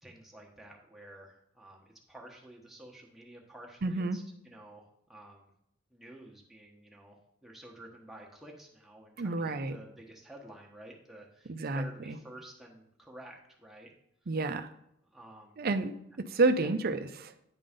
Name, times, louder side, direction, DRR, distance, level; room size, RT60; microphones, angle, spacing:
voice 1, 0.0-5.5 5.9-13.9 15.1-15.6 16.6-16.7, right 1 dB, ahead, -2 dB, 1.2 m, -51 dB
voice 2, 3.8-4.2 9.2-9.7 11.5-12.2 14.3-14.7 15.6-15.9 16.3-17.3, right 3 dB, 50° right, 10 dB, 0.6 m, -30 dB
9.8 x 3.9 x 5.1 m, 0.77 s
head